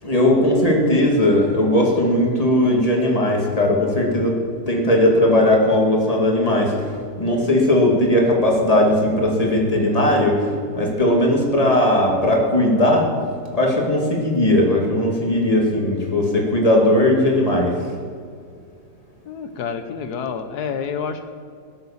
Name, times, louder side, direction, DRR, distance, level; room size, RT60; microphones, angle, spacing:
voice 1, 0.0-4.4 4.7-13.1 13.5-17.8, left 1 dB, 20° left, 0 dB, 2.6 m, -18 dB
voice 2, 19.3-21.2, left 6 dB, 80° left, 8 dB, 1.4 m, -28 dB
18.0 x 7.9 x 7.3 m, 2.3 s
omnidirectional pair, 1.7 m